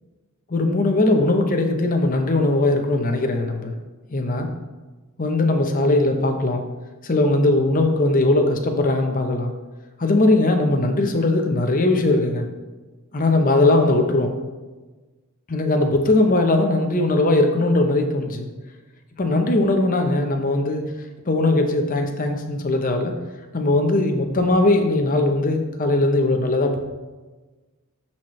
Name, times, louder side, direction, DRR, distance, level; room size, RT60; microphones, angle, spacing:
voice 1, 0.5-3.7 4.1-4.5 5.2-6.6 7.0-9.5 10.0-12.4 13.1-14.4 15.5-18.5 19.2-20.8 21.3-23.1 23.5-26.8, left 2 dB, 40° left, 4 dB, 0.8 m, -19 dB
12.5 x 4.3 x 3.2 m, 1.2 s
head